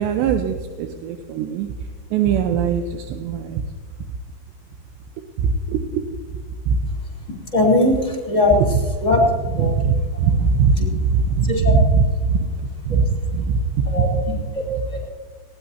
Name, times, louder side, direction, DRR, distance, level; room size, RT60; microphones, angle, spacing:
voice 1, 0.0-1.7 2.1-3.6 5.4-6.0 6.7-6.8 8.6-8.8 9.5-12.5 12.9-14.2, right 5 dB, 80° right, 6 dB, 3.0 m, -20 dB
voice 2, 7.5-8.6 9.0-9.2 9.6-9.7 10.8-10.9 11.5-11.7 13.9-14.1 14.5-14.6, left 2 dB, 20° left, -1 dB, 3.0 m, -18 dB
19.5 x 18.0 x 2.8 m, 1.5 s
omnidirectional pair, 5.1 m